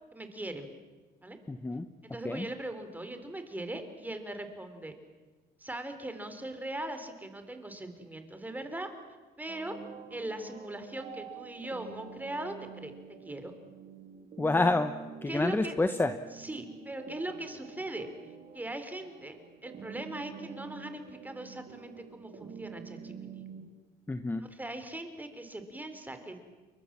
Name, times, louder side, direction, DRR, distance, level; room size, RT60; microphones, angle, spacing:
voice 1, 0.1-0.7 1.2-1.4 2.0-4.9 5.6-8.9 9.4-9.8 10.1-12.9 13.2-13.5 15.3-15.7 16.3-18.1 18.5-19.4 19.6-23.4 24.4-26.4, right 1 dB, 10° right, 8 dB, 3.8 m, -40 dB
voice 2, 1.5-1.8 2.2-2.5 14.4-14.9 15.2-16.2 24.1-24.4, left 2 dB, 10° left, 10 dB, 1.1 m, -28 dB
sound 1, 9.5-23.7, right 6 dB, 50° right, 3.6 m, -48 dB
30.0 x 23.0 x 7.5 m, 1.2 s
cardioid pair, 110°, 17 cm